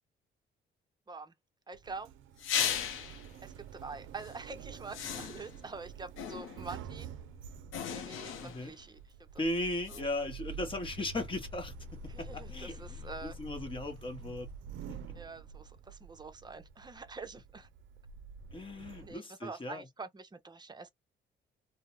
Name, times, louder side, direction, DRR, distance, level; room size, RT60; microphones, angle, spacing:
voice 1, 1.7-2.1 3.4-7.1 7.9-9.0 9.9-10.1 12.1-13.3 15.1-17.7 19.0-20.9, right 4 dB, 20° right, 0.6 m, -46 dB
Sliding door, 1.7-19.2, right 5 dB, 75° right, 0.4 m, -48 dB
sound 1, 2.4-3.3 4.2-4.4 4.9-5.6 6.2-6.8 7.7-8.8 9.9-10.0, left 9 dB, 85° left, 0.6 m, -36 dB
voice 2, 8.4-8.7 9.4-11.7 12.0-14.5 14.9-15.1 18.5-19.8, left 1 dB, 25° left, 1.0 m, -37 dB
2.3 x 2.0 x 3.0 m
cardioid pair, 90°, 20 cm